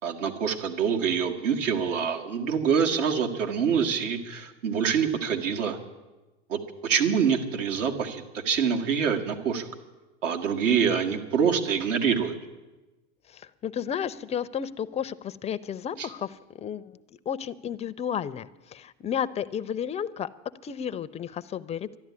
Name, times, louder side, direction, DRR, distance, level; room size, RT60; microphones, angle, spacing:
voice 1, 0.0-5.8 6.5-9.7 10.2-12.4 16.0-16.1, right 7 dB, 80° right, 4 dB, 2.0 m, -26 dB
voice 2, 13.3-16.9 17.3-20.3 20.6-22.0, left 8 dB, 20° left, 13 dB, 0.4 m, -32 dB
12.5 x 11.0 x 9.6 m, 1.1 s
hypercardioid pair, 110°, 37 cm